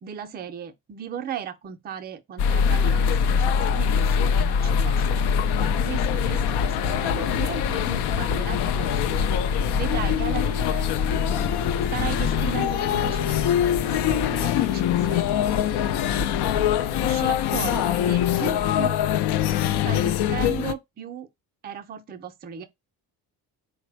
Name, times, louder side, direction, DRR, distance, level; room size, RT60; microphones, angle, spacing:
voice 1, 0.0-9.3 9.7-10.9 11.9-13.5 13.8-15.3 17.0-19.0 19.9-21.3 21.6-22.6, right 8 dB, 25° right, 0.4 m, -36 dB
sound 1, 2.4-20.7, left 8 dB, 85° left, 0.5 m, -23 dB
Car passing by, 4.6-16.0, left 6 dB, 50° left, 0.8 m, -49 dB
sound 2, 11.3-18.4, left 5 dB, 35° left, 0.5 m, -36 dB
4.1 x 2.1 x 4.4 m
cardioid pair, 175°, 39 cm